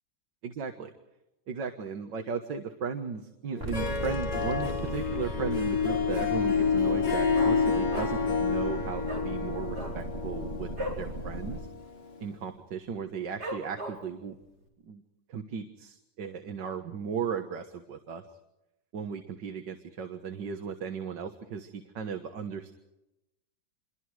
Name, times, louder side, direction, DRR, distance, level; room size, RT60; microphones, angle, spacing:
voice 1, 0.4-0.9 1.5-10.7 11.0-11.7 12.2-14.4 14.9-15.0 15.3-18.2 18.9-22.7, right 6 dB, 75° right, 6 dB, 2.1 m, -36 dB
Harp, 3.6-12.2, left 5 dB, 65° left, 3.0 m, -29 dB
sound 1, 3.6-11.6, equal, 30° right, 3.9 m, -37 dB
Dog, 5.8-6.3 6.6-6.7 6.9-8.4 8.6-8.8 9.0-9.3 9.7-11.1 11.4-11.6 11.9-12.3 12.7-12.8 13.4-14.2 14.7-14.8, right 1 dB, 55° right, 5.3 m, -38 dB
27.5 x 23.0 x 4.9 m, 0.93 s
omnidirectional pair, 2.0 m